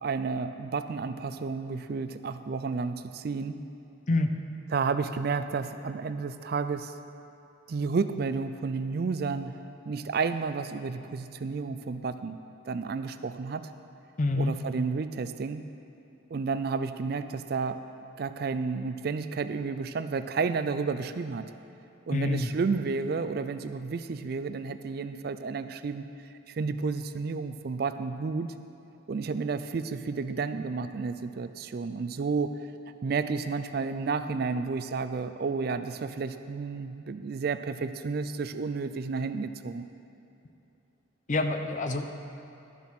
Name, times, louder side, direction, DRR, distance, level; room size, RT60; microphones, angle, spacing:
voice 1, 0.0-3.6 4.7-6.9 7.7-12.4 12.7-13.7 14.4-15.6 16.3-17.8 18.2-21.5 22.1-26.0 26.5-28.5 29.1-32.6 33.0-39.9, right 4 dB, 50° right, 11 dB, 0.3 m, -31 dB
voice 2, 14.2-14.5 22.1-22.5 41.3-42.2, left 2 dB, 35° left, 7 dB, 0.6 m, -27 dB
11.5 x 7.3 x 5.9 m, 2.8 s
head